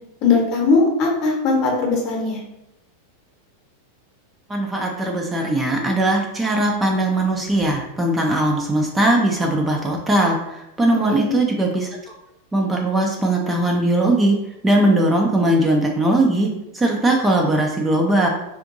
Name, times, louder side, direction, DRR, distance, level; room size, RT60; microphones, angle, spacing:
voice 1, 0.2-2.4 11.1-11.4, left 4 dB, 40° left, 0 dB, 0.9 m, -19 dB
voice 2, 4.5-11.9 12.5-14.4 14.6-16.5 16.7-18.3, right 1 dB, 10° right, 0 dB, 0.4 m, -19 dB
3.6 x 2.5 x 2.6 m, 0.89 s
figure-of-eight pair, 90°, 0 cm